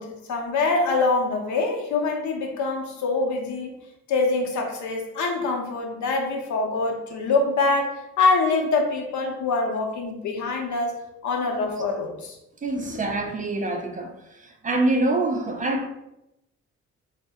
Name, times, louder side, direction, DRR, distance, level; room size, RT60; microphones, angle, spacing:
voice 1, 0.0-3.7 4.1-11.0 11.2-12.4, left 3 dB, 75° left, 0.7 m, -24 dB
voice 2, 12.6-15.9, right 2 dB, 25° right, 0.4 m, -25 dB
2.6 x 2.1 x 3.4 m
cardioid pair, 90°, 30 cm